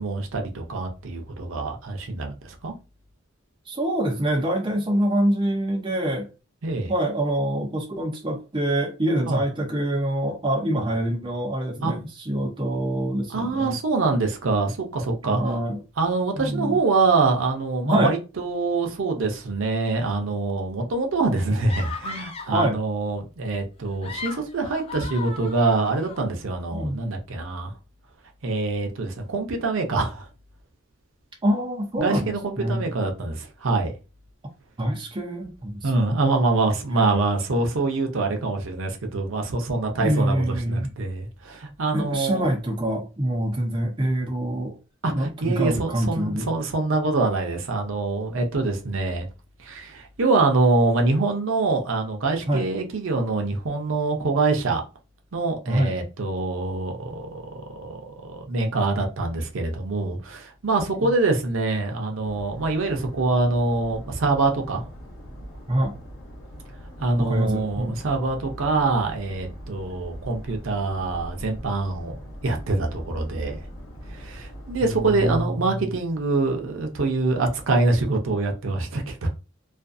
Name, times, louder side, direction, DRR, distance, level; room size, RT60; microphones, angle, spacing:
voice 1, 0.0-2.7 6.6-6.9 9.3-9.4 11.8-11.9 13.3-15.5 16.0-27.7 28.4-30.3 32.0-33.9 35.8-42.5 45.0-49.3 49.6-54.8 55.3-64.8 67.0-72.2 72.4-73.6 74.1-79.3, right 3 dB, 75° right, 0.6 m, -25 dB
voice 2, 3.7-6.3 6.9-13.8 15.3-15.8 16.3-16.8 17.8-18.2 22.5-22.8 26.7-27.0 31.4-33.0 34.8-35.9 36.9-37.2 40.0-40.9 41.9-44.8 45.0-46.5 52.5-52.7 55.7-56.0 61.0-61.1 65.7-65.9 67.2-68.0 74.8-75.9, right 1 dB, 25° right, 0.5 m, -25 dB
sound 1, 21.7-22.6 23.8-26.2, left 4 dB, 30° left, 0.3 m, -36 dB
sound 2, 62.2-75.4, equal, 70° left, 0.9 m, -41 dB
2.5 x 2.3 x 2.5 m
head